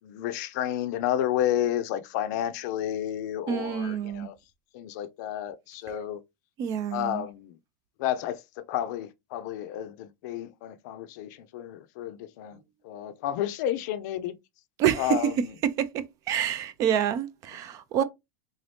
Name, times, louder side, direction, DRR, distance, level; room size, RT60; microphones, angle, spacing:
voice 1, 0.0-4.3 4.7-6.2 6.9-7.6 8.0-12.6 12.8-14.3 15.0-15.5 18.0-18.1, left 11 dB, 60° left, 0.5 m, -31 dB
voice 2, 3.5-4.3 6.6-7.2 14.8-15.2 15.6-18.0, right 9 dB, 30° right, 0.4 m, -27 dB
3.8 x 2.6 x 3.3 m
supercardioid pair, 165°, 11 cm